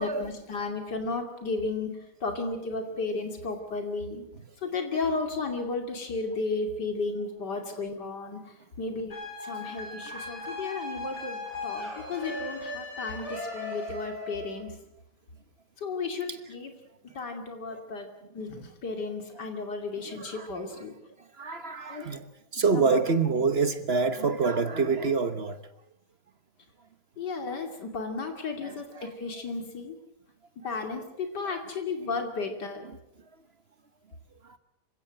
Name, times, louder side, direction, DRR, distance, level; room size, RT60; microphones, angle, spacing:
voice 1, 0.0-1.9 2.2-4.2 4.6-9.1 9.4-14.7 15.8-16.7 17.1-18.1 18.3-20.9 21.9-22.0 22.5-23.0 23.3-23.4 27.2-30.0 30.6-32.9, left 3 dB, 85° left, 3.3 m, -34 dB
sound 1, 9.1-14.6, left 2 dB, 40° left, 6.6 m, -37 dB
voice 2, 20.1-20.5 21.4-22.2 22.5-25.6 28.6-29.1 31.4-31.6, right 4 dB, 40° right, 1.2 m, -27 dB
26.5 x 17.0 x 7.9 m
omnidirectional pair, 1.8 m